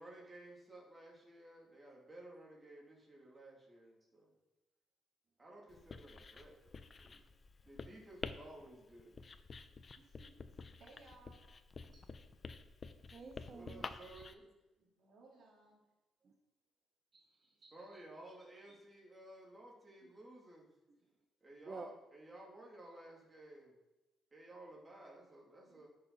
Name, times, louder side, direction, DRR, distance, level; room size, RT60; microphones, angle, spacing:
voice 1, 0.0-4.3 5.4-7.2 7.6-9.2 13.5-14.5 14.8-14.9 17.7-20.7 21.4-23.7 24.3-25.9, right 1 dB, 25° right, -3 dB, 3.1 m, -55 dB
Writing, 5.7-14.3, left 4 dB, 35° left, 0.7 m, -50 dB
voice 2, 10.0-10.3 11.9-12.0 13.1-13.8 16.2-16.3 17.1-18.0 21.6-21.9 25.7-25.8, right 4 dB, 45° right, 4 dB, 1.0 m, -52 dB
voice 3, 10.8-11.4 12.1-12.4 14.8-15.8, right 3 dB, 70° right, -3 dB, 3.4 m, -62 dB
11.0 x 6.7 x 4.2 m, 1.0 s
cardioid pair, 90°, 0 cm